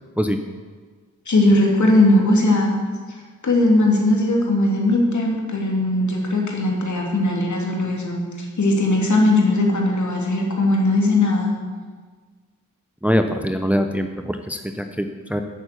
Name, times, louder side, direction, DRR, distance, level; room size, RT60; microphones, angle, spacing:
voice 1, 1.3-2.7 3.1-3.2 3.4-11.5, left 2 dB, 60° left, -1 dB, 2.8 m, -19 dB
voice 2, 13.0-15.4, equal, 5° right, 6 dB, 0.8 m, -23 dB
8.3 x 6.9 x 8.5 m, 1.5 s
cardioid pair, 45°, 34 cm